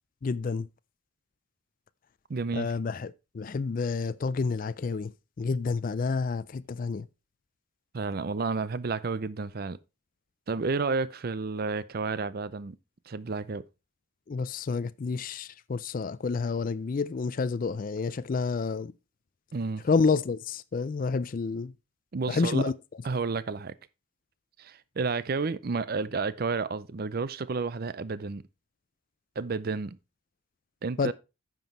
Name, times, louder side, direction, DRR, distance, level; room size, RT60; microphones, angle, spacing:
voice 1, 0.2-0.7 2.5-5.1 5.4-7.1 14.3-18.9 19.8-21.7 22.3-22.7 31.0-31.1, left 4 dB, 40° left, 0.3 m, -29 dB
voice 2, 2.3-2.7 7.9-9.8 10.5-12.8 13.1-13.6 19.5-19.8 22.1-22.7 23.0-23.7 24.6-28.4 29.4-30.0 30.8-31.1, right 4 dB, 45° right, 0.5 m, -31 dB
9.2 x 6.0 x 4.5 m
head